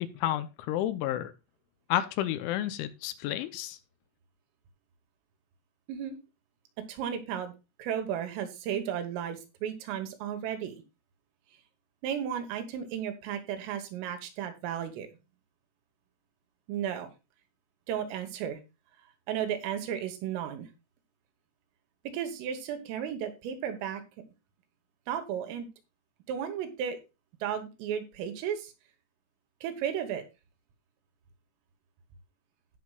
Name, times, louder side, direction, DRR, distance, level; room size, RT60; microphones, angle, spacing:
voice 1, 0.0-1.3 1.9-3.8, left 12 dB, 80° left, 3.0 m, -31 dB
voice 2, 6.9-7.5 7.8-10.8 12.0-15.1 16.7-17.1 17.9-18.6 19.3-20.7 22.1-24.0 25.1-25.7 26.3-27.0 27.4-28.7 29.6-30.2, right 9 dB, 85° right, 3.9 m, -34 dB
17.0 x 6.3 x 2.4 m
omnidirectional pair, 5.7 m